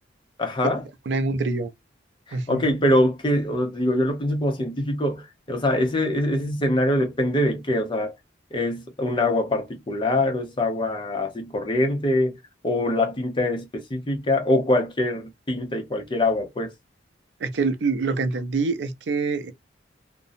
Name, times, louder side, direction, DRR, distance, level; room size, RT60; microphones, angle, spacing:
voice 1, 0.4-0.8 2.3-8.1 8.5-12.4 12.6-16.7, left 1 dB, 25° left, 0.6 m, -24 dB
voice 2, 1.1-1.7 2.3-2.7 17.4-19.5, right 4 dB, 75° right, 0.5 m, -25 dB
2.5 x 2.0 x 2.5 m
head